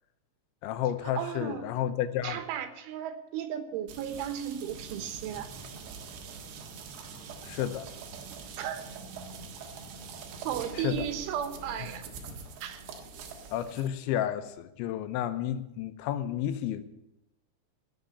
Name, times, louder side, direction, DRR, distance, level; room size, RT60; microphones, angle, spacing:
voice 1, 0.6-2.4 7.4-7.9 10.8-11.0 13.5-16.8, left 11 dB, 80° left, 3.2 m, -31 dB
voice 2, 1.2-1.7 2.2-5.5 8.6-8.8 10.5-12.1 12.6-12.8, right 9 dB, 90° right, 3.7 m, -35 dB
sound 1, 3.9-13.9, right 5 dB, 70° right, 3.6 m, -44 dB
sound 2, 4.7-10.6, right 3 dB, 55° right, 4.3 m, -51 dB
17.0 x 6.7 x 9.7 m
omnidirectional pair, 5.3 m